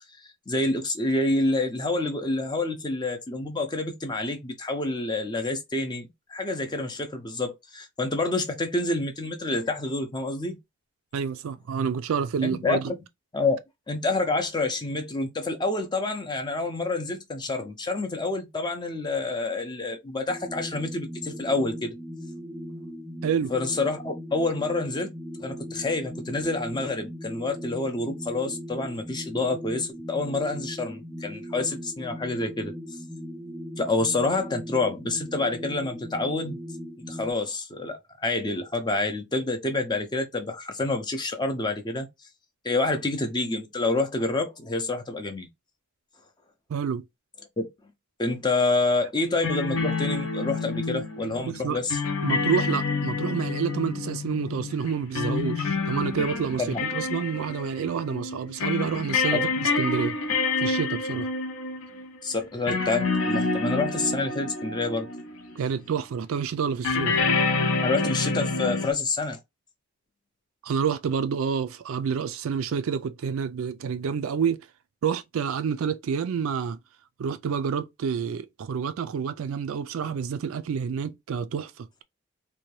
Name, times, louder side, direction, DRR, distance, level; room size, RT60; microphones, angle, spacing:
voice 1, 0.5-10.6 12.4-13.0 13.3-13.6 13.9-22.0 23.5-25.1 25.4-32.7 33.8-36.6 37.1-42.1 42.6-45.5 47.6-47.7 48.2-52.0 56.6-56.8 59.3-59.4 62.2-65.1 67.8-69.4, left 2 dB, 20° left, 0.4 m, -28 dB
voice 2, 11.1-12.9 23.2-23.5 46.7-47.0 51.4-51.8 52.2-60.2 60.6-61.3 65.6-67.2 70.6-74.6 75.0-76.8 77.2-82.0, right 6 dB, 70° right, 0.3 m, -28 dB
sound 1, 20.3-37.3, equal, 5° right, 0.8 m, -39 dB
sound 2, 49.2-65.5 66.8-68.9, left 4 dB, 65° left, 0.6 m, -28 dB
2.7 x 2.2 x 3.0 m
head